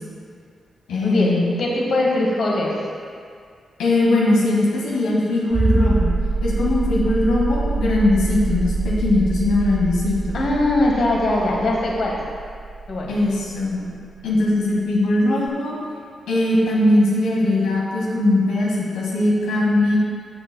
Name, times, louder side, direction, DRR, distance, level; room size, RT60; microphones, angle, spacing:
voice 1, 0.9-1.4 3.8-6.1 6.4-10.4 13.1-13.8 14.2-15.8 16.3-20.0, left 2 dB, 90° left, -4 dB, 1.6 m, -20 dB
voice 2, 1.6-2.7 10.3-12.2 12.9-13.1, left 2 dB, 65° left, -2 dB, 1.5 m, -21 dB
sound 1, 5.5-14.0 15.5-15.6, right 3 dB, 35° right, 0.3 m, -24 dB
12.5 x 6.6 x 2.2 m, 2.2 s
supercardioid pair, 45°, 0 cm